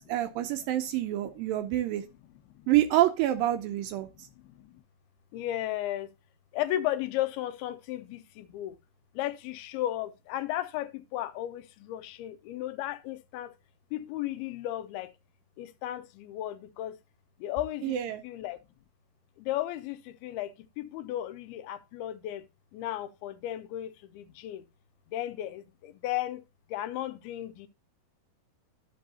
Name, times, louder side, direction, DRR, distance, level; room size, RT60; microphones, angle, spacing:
voice 1, 0.0-2.0 2.7-4.1 17.8-18.2, right 13 dB, 80° right, 2.1 m, -27 dB
voice 2, 4.2-4.8 5.3-6.1 6.5-8.8 9.2-13.5 13.9-15.1 15.6-17.0 17.4-18.0 18.2-18.6 19.4-22.5 22.7-24.7 25.1-26.4 26.7-27.7, left 13 dB, 85° left, 2.5 m, -35 dB
12.0 x 5.4 x 2.7 m
omnidirectional pair, 4.4 m